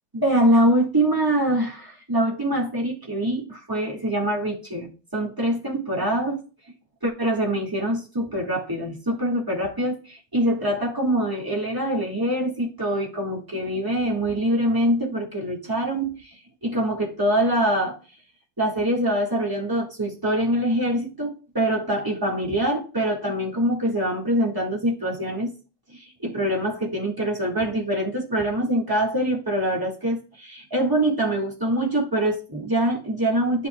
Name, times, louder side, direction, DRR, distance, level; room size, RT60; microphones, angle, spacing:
voice 1, 0.1-6.4 7.0-16.3 16.6-18.0 18.6-25.5 25.9-33.7, right 1 dB, 10° right, -1 dB, 1.4 m, -24 dB
11.0 x 5.4 x 2.2 m, 0.35 s
omnidirectional pair, 2.1 m